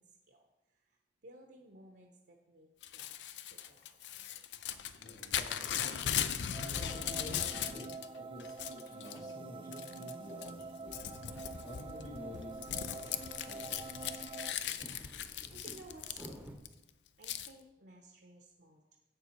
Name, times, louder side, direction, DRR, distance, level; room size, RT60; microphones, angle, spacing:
voice 1, 0.0-3.2 3.5-4.0 14.6-16.6 17.2-19.0, right 2 dB, 65° right, 2 dB, 0.9 m, -57 dB
Crumpling crinkling / Tearing, 2.8-8.1 8.4-9.2 9.7-10.1 10.4-16.7 17.2-17.5, left 9 dB, 75° left, 0.5 m, -38 dB
voice 2, 5.0-13.1 13.4-14.0, left 1 dB, 45° left, -1 dB, 1.8 m, -50 dB
sound 1, 6.5-14.5, right 3 dB, 30° right, 0.3 m, -46 dB
sound 2, 10.9-16.6, equal, 10° right, 0.8 m, -54 dB
7.7 x 6.8 x 4.5 m, 1.0 s
head